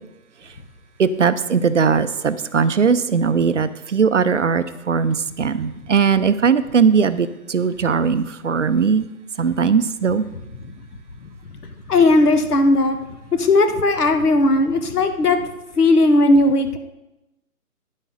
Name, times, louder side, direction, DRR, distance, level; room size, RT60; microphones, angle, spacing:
voice 1, 1.0-9.0 9.4-10.2, right 6 dB, 50° right, 13 dB, 0.6 m, -19 dB
voice 2, 11.6-13.0 13.3-15.4 15.8-16.8, left 2 dB, 75° left, 7 dB, 1.5 m, -17 dB
10.5 x 9.2 x 4.0 m, 0.94 s
hypercardioid pair, 160°, 46 cm